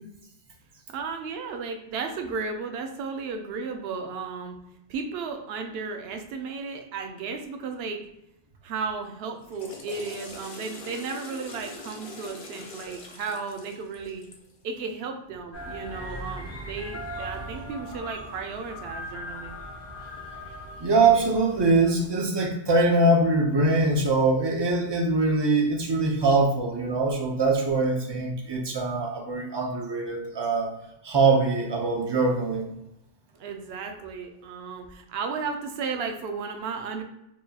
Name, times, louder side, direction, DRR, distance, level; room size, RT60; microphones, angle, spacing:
voice 1, 0.9-4.6 4.9-8.1 8.6-14.3 14.6-19.6 33.4-37.0, right 5 dB, 65° right, 5 dB, 0.7 m, -34 dB
Water / Toilet flush, 9.3-14.6, left 2 dB, 60° left, 0.3 m, -43 dB
sound 1, 15.5-22.1, equal, 85° left, 1.6 m, -39 dB
voice 2, 20.8-30.7 31.0-32.7, right 3 dB, 45° right, 0 dB, 0.3 m, -23 dB
4.4 x 2.3 x 2.8 m, 0.83 s
omnidirectional pair, 1.2 m